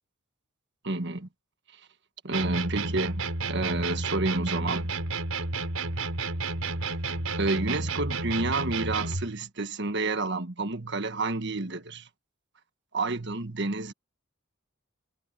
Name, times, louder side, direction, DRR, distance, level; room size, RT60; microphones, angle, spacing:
voice 1, 0.8-1.3 2.2-4.9 7.4-12.1 12.9-13.9, right 2 dB, 55° right, 1.5 m, -30 dB
sound 1, 2.3-9.3, right 3 dB, 80° right, 5.4 m, -31 dB
head